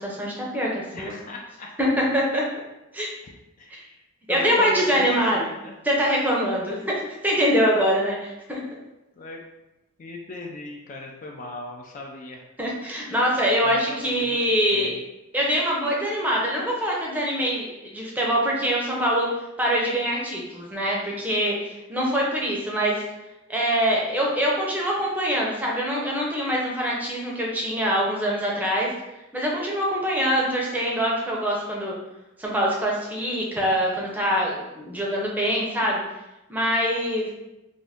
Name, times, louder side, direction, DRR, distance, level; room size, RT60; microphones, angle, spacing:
voice 1, 0.0-1.1 1.8-2.4 2.9-3.1 3.7-3.8 4.3-5.4 5.9-8.8 12.6-14.9 15.3-19.3 19.6-23.0 23.5-28.9 29.3-32.0 32.4-36.0 36.5-37.3, equal, 10° right, -3 dB, 0.6 m, -24 dB
voice 2, 0.9-1.7 3.6-4.0 4.3-5.8 9.2-9.4 10.0-12.4 13.6-15.0, left 1 dB, 40° left, 1 dB, 0.3 m, -38 dB
2.5 x 2.5 x 3.4 m, 0.96 s
head